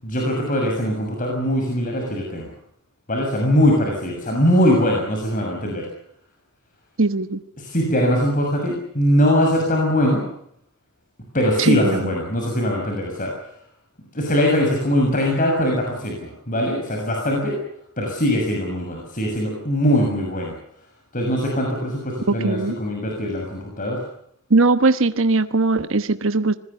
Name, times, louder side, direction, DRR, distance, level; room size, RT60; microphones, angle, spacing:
voice 1, 0.0-2.5 3.1-5.9 7.6-10.3 11.3-13.3 14.1-17.6 18.0-20.5 21.1-24.0, equal, 40° left, 0 dB, 6.8 m, -21 dB
voice 2, 7.0-7.4 11.6-12.0 22.4-22.7 24.5-26.6, right 3 dB, 65° right, 11 dB, 1.2 m, -19 dB
26.0 x 21.0 x 6.9 m, 0.68 s
head